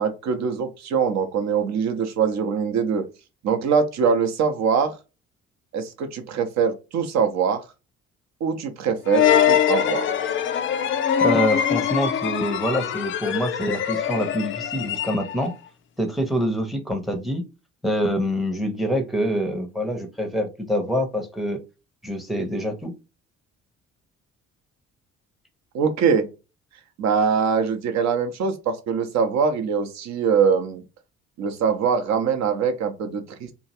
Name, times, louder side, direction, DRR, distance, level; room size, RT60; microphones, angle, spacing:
voice 1, 0.0-3.0 3.4-4.9 5.7-7.6 8.4-10.1 25.7-26.2 27.0-30.8 31.4-33.5, right 6 dB, 50° right, 0.7 m, -23 dB
sound 1, 9.1-15.5, left 9 dB, 35° left, 0.4 m, -23 dB
voice 2, 11.2-15.5 16.0-17.4 17.8-21.6 22.0-22.9, equal, ahead, 0.8 m, -25 dB
3.0 x 2.3 x 2.8 m
figure-of-eight pair, 45°, 36 cm